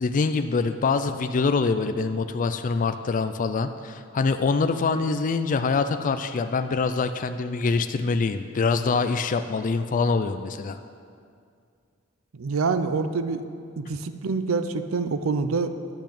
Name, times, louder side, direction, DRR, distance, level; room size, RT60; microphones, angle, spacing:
voice 1, 0.0-10.8, left 4 dB, 40° left, 9 dB, 0.4 m, -25 dB
voice 2, 12.3-13.4 13.8-15.9, right 4 dB, 75° right, 10 dB, 0.6 m, -26 dB
10.5 x 5.8 x 8.6 m, 2.3 s
head